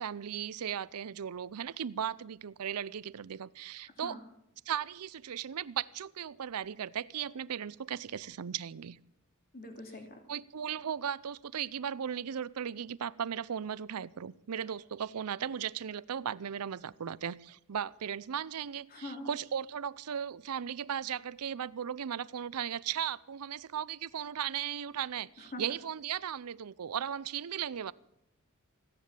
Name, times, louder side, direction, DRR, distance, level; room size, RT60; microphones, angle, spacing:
voice 1, 0.0-4.1 4.7-9.0 10.3-27.9, right 8 dB, 80° right, 20 dB, 0.5 m, -37 dB
voice 2, 9.5-10.2 18.9-19.3 25.4-25.7, left 1 dB, 45° left, 4 dB, 2.8 m, -43 dB
15.5 x 10.5 x 7.4 m, 0.82 s
head